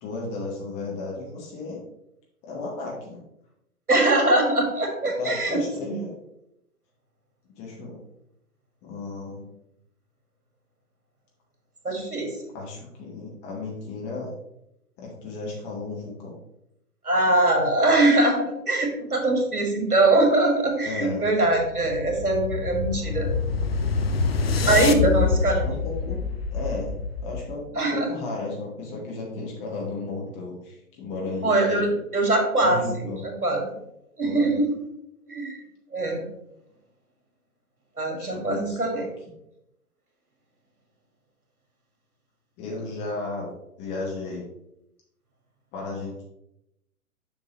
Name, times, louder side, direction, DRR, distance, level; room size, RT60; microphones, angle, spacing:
voice 1, 0.0-1.8 2.4-3.2 5.2-6.1 7.6-8.0 8.8-9.5 12.5-14.3 15.0-16.3 20.9-21.3 24.6-25.2 25.6-26.3 26.5-27.0 27.2-31.9 32.6-33.3 34.2-34.5 38.2-39.0 42.6-43.5 43.8-44.4 45.7-46.2, left 3 dB, 15° left, -2 dB, 1.0 m, -34 dB
voice 2, 3.9-6.0 11.8-12.3 17.0-23.3 24.7-25.7 27.8-28.1 31.4-31.9 32.1-32.8 33.2-33.8 34.2-34.7 35.3-35.6 35.9-36.2 38.0-39.0, right 2 dB, 80° right, 2 dB, 1.9 m, -22 dB
sound 1, 21.3-27.6, left 4 dB, 45° left, 0.6 m, -26 dB
7.1 x 5.8 x 3.0 m, 0.83 s
figure-of-eight pair, 125°, 44 cm